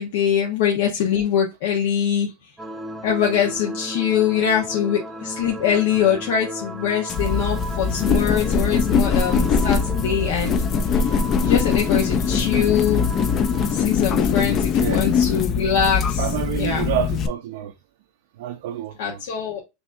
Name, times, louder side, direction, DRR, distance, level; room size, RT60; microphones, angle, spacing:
voice 1, 0.0-2.3 3.0-10.5 10.9-11.0 11.4-13.1 13.7-16.3 16.5-16.9 19.0-19.6, left 8 dB, 70° left, 1.0 m, -23 dB
sound 1, 2.6-13.8, right 1 dB, 10° right, 0.8 m, -35 dB
sound 2, 7.1-17.3, left 6 dB, 35° left, 0.5 m, -21 dB
voice 2, 14.8-15.1 16.2-17.7 18.4-19.2, right 11 dB, 70° right, 0.5 m, -28 dB
6.0 x 2.7 x 2.6 m
supercardioid pair, 135°, 0 cm